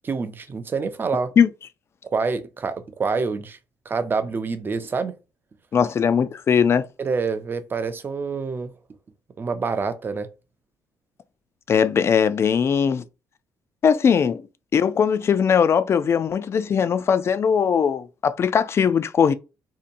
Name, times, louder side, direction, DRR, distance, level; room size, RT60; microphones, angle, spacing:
voice 1, 0.0-1.3 2.0-3.6 3.9-5.1 7.0-8.7 9.4-10.3, right 4 dB, 30° right, 0.5 m, -26 dB
voice 2, 5.7-6.9 11.7-13.0 13.8-14.5 14.7-19.3, left 7 dB, 40° left, 0.3 m, -20 dB
2.8 x 2.2 x 2.5 m
cardioid pair, 105°, 7 cm